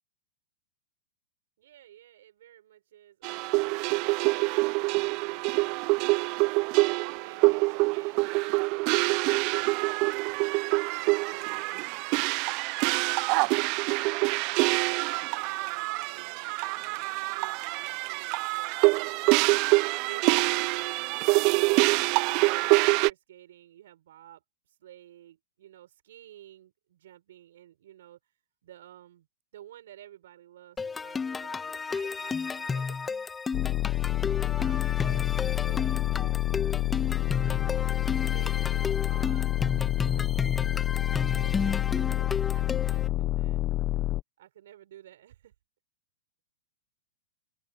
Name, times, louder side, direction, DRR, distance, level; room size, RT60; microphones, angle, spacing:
voice 1, 1.6-12.4 13.0-19.8 20.1-21.2 21.8-28.3 28.6-29.3 29.5-33.4 33.7-37.9 38.3-43.6 44.4-45.5, right 12 dB, 70° right, 6.1 m, -53 dB
sound 1, 3.2-23.1, right 27 dB, 45° right, 0.3 m, -26 dB
sound 2, 30.8-43.1, left 5 dB, 15° left, 1.4 m, -33 dB
sound 3, 33.5-44.2, left 15 dB, 35° left, 0.7 m, -28 dB
hypercardioid pair, 125°, 0 cm